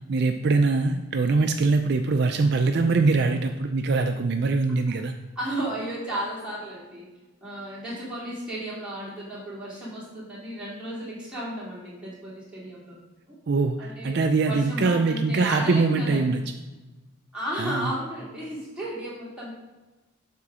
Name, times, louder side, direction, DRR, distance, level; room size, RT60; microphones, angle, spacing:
voice 1, 0.1-5.1 13.5-16.4 17.6-17.9, right 3 dB, 50° right, 6 dB, 0.4 m, -23 dB
voice 2, 5.4-7.1 7.4-13.0 13.3-13.4 13.8-16.3 17.3-19.5, right 1 dB, 5° right, -8 dB, 2.4 m, -34 dB
7.4 x 3.8 x 6.1 m, 1.1 s
head